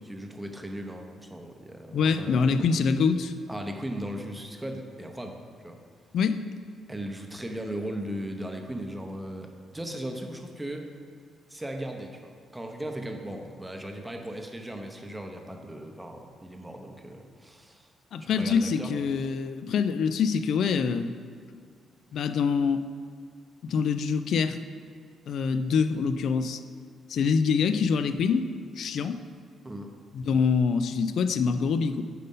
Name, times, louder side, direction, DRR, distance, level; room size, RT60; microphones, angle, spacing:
voice 1, 0.0-2.7 3.5-5.8 6.9-10.9 11.5-17.9 18.2-19.2 29.6-29.9, right 1 dB, 10° right, 3 dB, 0.7 m, -37 dB
voice 2, 1.9-3.3 6.1-6.4 18.1-21.1 22.1-22.8 23.6-24.6 25.3-26.6 27.1-28.5 28.8-29.2 30.1-32.0, left 5 dB, 65° left, 10 dB, 0.3 m, -25 dB
5.3 x 4.2 x 5.4 m, 2.1 s
cardioid pair, 90°, 0 cm